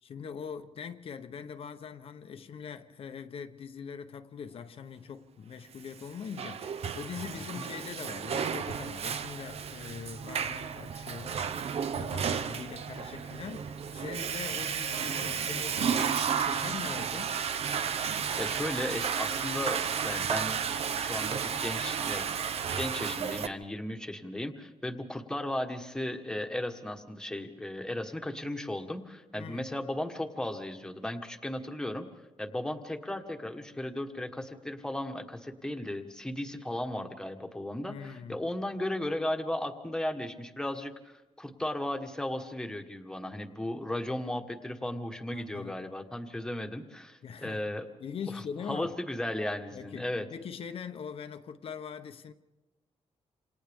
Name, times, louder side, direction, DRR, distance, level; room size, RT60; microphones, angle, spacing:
voice 1, 0.0-11.5 11.9-17.4 29.4-29.7 37.9-38.4 45.3-45.9 47.2-47.6 48.0-48.9 49.7-52.3, left 7 dB, 55° left, 0.8 m, -42 dB
Water / Toilet flush, 6.0-23.5, right 7 dB, 60° right, 0.8 m, -32 dB
voice 2, 18.4-20.6 21.0-22.3 22.8-32.1 32.4-47.9 48.3-50.2, left 1 dB, 5° left, 1.4 m, -35 dB
28.0 x 27.5 x 3.6 m
wide cardioid pair, 160°, 12 cm